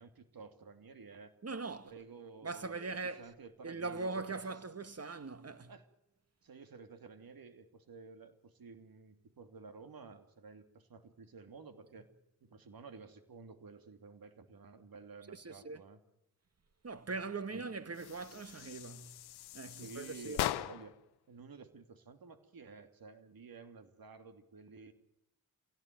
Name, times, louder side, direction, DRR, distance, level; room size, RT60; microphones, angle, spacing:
voice 1, 0.0-1.3 1.8-4.4 5.6-5.9 6.4-12.1 12.4-16.0 17.5-17.7 19.7-20.9 21.3-24.9, right 5 dB, 65° right, 3.0 m, -53 dB
voice 2, 1.4-1.9 2.4-3.3 3.6-5.7 15.3-15.8 16.8-19.1 19.5-20.4, right 3 dB, 40° right, 1.9 m, -41 dB
sound 1, 17.9-21.0, left 13 dB, 85° left, 0.9 m, -40 dB
27.0 x 17.0 x 9.3 m
supercardioid pair, 40°, 38 cm